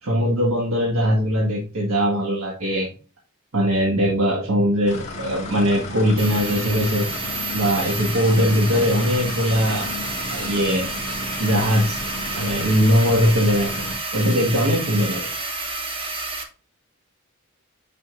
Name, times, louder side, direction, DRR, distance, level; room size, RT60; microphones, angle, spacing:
voice 1, 0.0-2.9 3.5-7.1 7.5-9.9 10.3-10.9 11.4-12.0 12.4-13.9 14.1-15.3, equal, 75° right, -3 dB, 1.6 m, -20 dB
sound 1, 4.9-13.9, left 1 dB, 35° left, 1.9 m, -33 dB
sound 2, 6.2-16.4, right 3 dB, 25° right, 1.2 m, -30 dB
8.2 x 5.1 x 2.5 m, 0.36 s
head